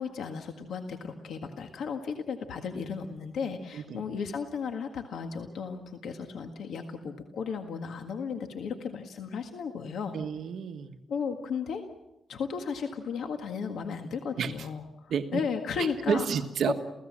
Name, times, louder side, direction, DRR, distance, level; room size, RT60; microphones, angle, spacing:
voice 1, 0.0-10.2 11.1-11.8 12.3-16.3 16.7-16.8, left 6 dB, 85° left, 5 dB, 1.8 m, -34 dB
voice 2, 3.7-4.0 10.1-11.0 14.4-14.7 15.1-15.4 15.8-16.7, right 7 dB, 70° right, 6 dB, 1.5 m, -31 dB
29.0 x 17.0 x 7.5 m, 0.92 s
wide cardioid pair, 145°, 0 cm